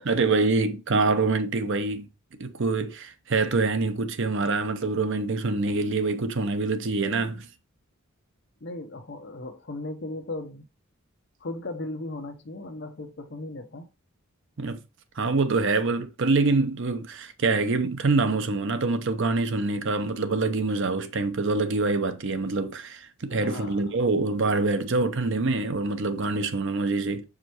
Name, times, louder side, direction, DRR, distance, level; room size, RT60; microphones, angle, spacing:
voice 1, 0.0-2.1 2.4-7.5 14.6-14.8 15.2-27.2, right 3 dB, 60° right, 0.7 m, -25 dB
voice 2, 8.6-10.7 11.4-13.9 23.3-23.8, left 2 dB, 50° left, 0.9 m, -37 dB
6.4 x 4.9 x 3.0 m
head